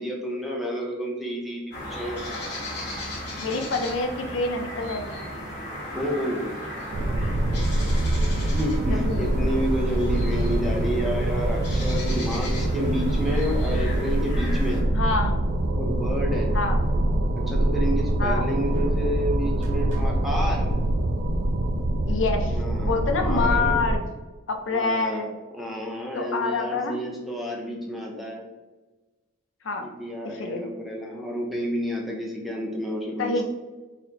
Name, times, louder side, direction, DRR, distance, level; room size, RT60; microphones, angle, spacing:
voice 1, 0.0-2.2 5.9-6.4 8.2-14.8 15.7-16.5 17.4-20.7 22.5-23.8 24.7-25.2 25.5-28.4 29.8-33.4, equal, ahead, -2 dB, 0.6 m, -30 dB
sound 1, 1.7-14.8, left 1 dB, 55° left, 1.2 m, -36 dB
voice 2, 3.4-5.2 8.9-9.5 14.9-15.3 16.5-16.8 18.2-18.4 22.1-24.0 24.5-25.3 26.1-27.0 29.6-29.8 30.2-30.6 33.2-33.4, left 3 dB, 70° left, 4 dB, 0.5 m, -27 dB
sound 2, 6.9-24.0, right 1 dB, 70° right, 0.4 m, -24 dB
sound 3, 17.7-20.6, equal, 35° right, 0.7 m, -44 dB
4.1 x 2.1 x 4.0 m, 1.2 s
head